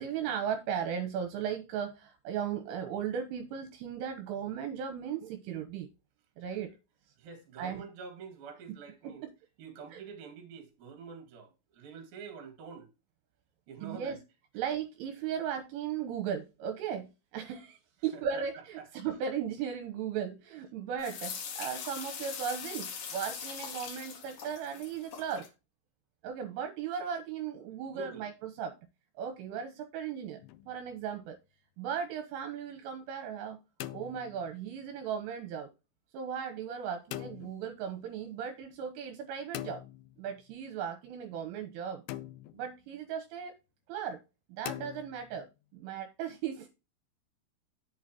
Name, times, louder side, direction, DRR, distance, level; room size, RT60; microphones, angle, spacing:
voice 1, 0.0-5.9 6.4-6.7 7.6-7.8 9.0-9.3 9.9-10.0 13.8-14.2 14.5-25.5 26.2-28.8 29.2-30.4 30.7-31.4 31.8-33.6 33.9-35.7 36.1-39.8 40.2-42.0 42.5-43.5 43.9-44.2 44.5-46.7, right 8 dB, 80° right, 3.3 m, -37 dB
voice 2, 7.2-9.3 9.6-12.9 13.7-14.2 18.1-18.9 27.9-28.3, right 6 dB, 55° right, 3.3 m, -47 dB
sound 1, 21.0-25.5, left 6 dB, 55° left, 2.6 m, -41 dB
sound 2, 30.4-30.9 33.5-34.8 37.1-37.7 39.5-40.5 42.1-42.8 44.7-45.5, left 15 dB, 80° left, 2.8 m, -43 dB
8.0 x 8.0 x 2.9 m
omnidirectional pair, 6.0 m